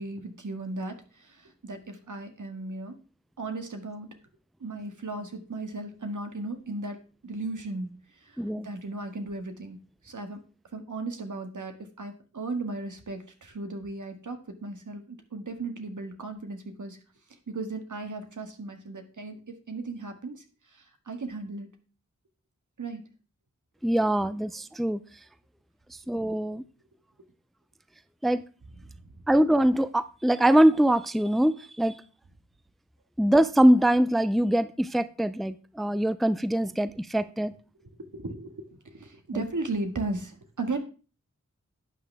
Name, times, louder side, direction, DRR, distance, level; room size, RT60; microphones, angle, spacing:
voice 1, 0.0-3.0 3.4-4.1 4.6-7.0 7.2-10.4 10.7-17.0 17.5-21.7 22.8-23.0 28.8-29.1 37.8-40.8, right 2 dB, 80° right, 2.0 m, -36 dB
voice 2, 8.4-8.7 23.8-25.0 26.1-26.6 28.2-28.4 29.3-32.0 33.2-37.5 39.3-39.4, right 1 dB, ahead, 0.5 m, -23 dB
11.5 x 8.9 x 3.5 m
wide cardioid pair, 75°, 30 cm